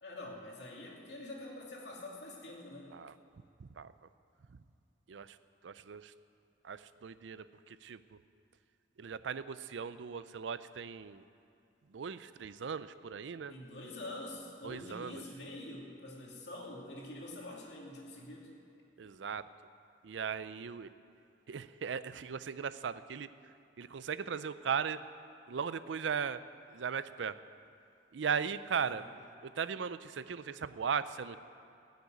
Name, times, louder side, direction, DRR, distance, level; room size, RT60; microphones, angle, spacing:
voice 1, 0.0-2.9 13.5-18.5 28.8-29.0, left 1 dB, 65° left, -2 dB, 2.7 m, -46 dB
voice 2, 3.6-3.9 5.1-5.4 5.6-6.1 6.6-8.2 9.0-11.2 11.9-13.5 14.6-15.2 19.0-19.5 20.0-20.9 21.5-23.3 23.8-25.0 25.5-26.4 26.7-27.4 28.1-29.0 29.4-31.4, right 6 dB, 85° right, 14 dB, 0.5 m, -38 dB
16.5 x 6.7 x 9.2 m, 2.5 s
head